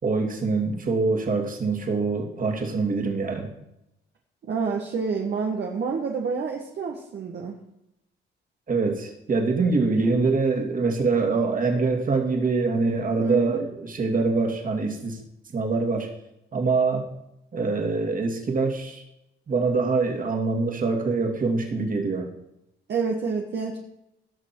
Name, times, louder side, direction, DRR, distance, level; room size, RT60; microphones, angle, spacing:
voice 1, 0.0-3.5 8.7-15.2 15.5-16.1 16.5-17.0 17.5-19.0 19.5-22.3, right 4 dB, 45° right, 2 dB, 2.6 m, -24 dB
voice 2, 4.4-7.6 13.2-13.6 22.9-23.8, right 5 dB, 60° right, 0 dB, 1.5 m, -28 dB
18.0 x 6.2 x 4.7 m, 0.84 s
cardioid pair, 90°, 20 cm